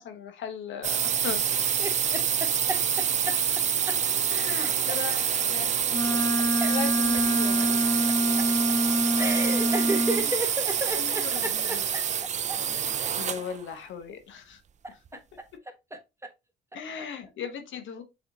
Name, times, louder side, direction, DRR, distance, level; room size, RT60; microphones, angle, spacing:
voice 1, 0.0-1.4 4.3-5.7 6.3-7.8 9.8-10.3 10.9-11.8 13.2-14.6 16.7-18.0, left 7 dB, 75° left, 1.1 m, -38 dB
sound 1, 0.8-13.5, right 8 dB, 35° right, 0.4 m, -27 dB
voice 2, 1.8-3.4 3.9-4.0 4.6-5.0 6.6-6.7 8.4-8.5 9.2-12.0 12.5-12.6 14.8-15.2 15.9-16.0, right 1 dB, 15° right, 1.1 m, -33 dB
Wind instrument woodwind instrument, 5.9-10.3, equal, 20° left, 0.7 m, -26 dB
5.9 x 3.2 x 2.7 m
cardioid pair, 90°, 20 cm